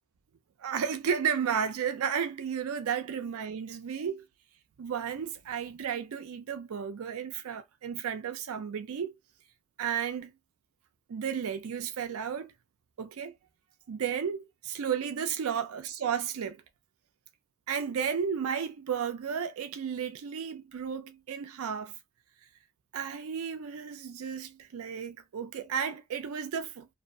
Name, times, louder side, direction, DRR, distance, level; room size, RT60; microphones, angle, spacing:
voice 1, 0.6-4.2 4.8-9.1 9.8-10.3 11.1-12.5 13.0-13.3 13.9-16.6 17.7-21.9 22.9-26.9, right 7 dB, 80° right, 0.4 m, -33 dB
2.6 x 2.1 x 2.5 m
head